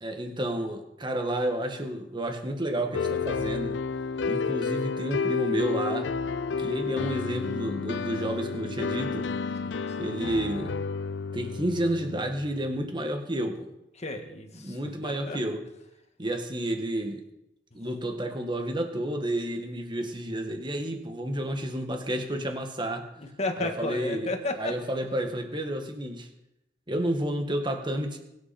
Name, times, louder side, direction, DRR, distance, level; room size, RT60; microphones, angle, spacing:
voice 1, 0.0-3.8 4.3-6.1 6.6-9.3 10.0-10.7 11.3-13.7 14.5-15.6 16.2-17.2 17.7-23.1 23.6-24.3 24.6-26.3 26.9-28.2, right 1 dB, 25° right, 4 dB, 1.8 m, -30 dB
sound 1, 2.9-12.7, left 5 dB, 85° left, 0.5 m, -31 dB
voice 2, 9.6-10.0 14.0-15.4 23.2-24.7, left 2 dB, 40° left, 4 dB, 1.9 m, -33 dB
22.5 x 8.5 x 4.4 m, 0.87 s
head